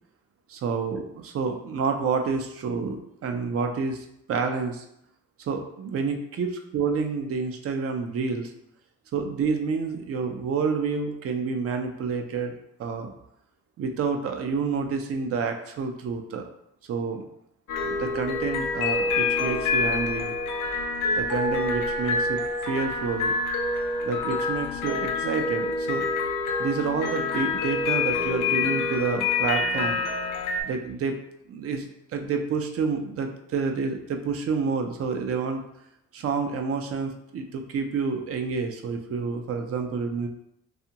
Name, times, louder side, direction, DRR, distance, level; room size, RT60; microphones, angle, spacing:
voice 1, 0.5-4.8 5.5-8.5 9.1-12.5 12.8-13.1 13.8-16.4 16.9-17.2 17.8-20.3 21.2-23.3 24.1-26.1 26.6-30.0 30.6-31.1 31.5-35.6 36.1-40.3, right 5 dB, 50° right, 5 dB, 0.5 m, -29 dB
sound 1, 17.7-30.6, left 3 dB, 85° left, 0.5 m, -27 dB
2.6 x 2.4 x 2.8 m, 0.76 s
cardioid pair, 90°, 30 cm